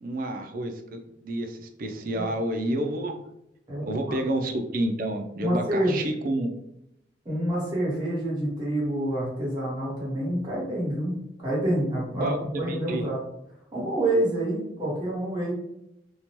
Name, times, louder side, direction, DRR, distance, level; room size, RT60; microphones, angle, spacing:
voice 1, 0.0-3.1 3.9-6.5 12.2-13.1, right 1 dB, 50° right, 4 dB, 0.4 m, -29 dB
voice 2, 3.7-4.2 5.4-6.0 7.2-13.2 13.7-15.5, right 1 dB, 25° right, -7 dB, 1.3 m, -27 dB
2.7 x 2.1 x 3.0 m, 0.82 s
head